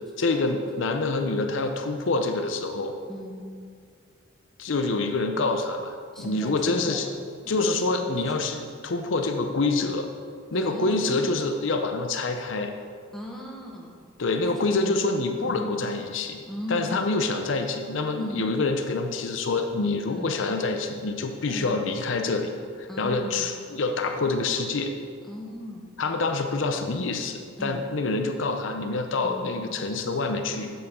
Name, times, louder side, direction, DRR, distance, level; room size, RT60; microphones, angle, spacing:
voice 1, 0.2-2.9 4.6-7.1 7.5-10.1 10.5-12.7 14.2-16.4 16.7-22.5 22.8-24.9 26.0-30.7, left 3 dB, 70° left, 6 dB, 0.6 m, -26 dB
voice 2, 6.1-7.0 7.4-8.2 10.6-11.3 13.1-13.9 14.5-15.1 15.4-15.8 16.5-17.0 18.2-18.4 20.1-20.3 21.4-21.7 22.9-23.5 25.3-26.0 27.6-27.9 29.2-29.6, equal, ahead, -3 dB, 1.2 m, -37 dB
9.4 x 8.2 x 3.7 m, 2.1 s
head